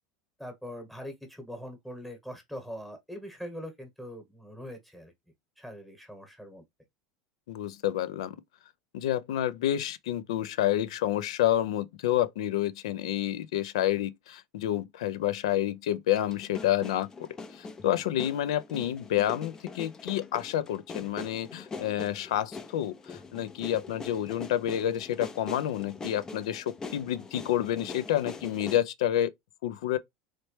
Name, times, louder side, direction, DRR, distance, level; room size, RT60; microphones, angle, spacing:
voice 1, 0.4-5.1 5.6-6.6, equal, ahead, 1.1 m, -42 dB
voice 2, 7.5-8.4 8.9-17.1 17.5-29.3 29.6-30.0, left 12 dB, 85° left, 0.4 m, -29 dB
sound 1, 16.1-28.8, left 4 dB, 20° left, 0.4 m, -43 dB
3.2 x 2.9 x 3.1 m
supercardioid pair, 120°, 3 cm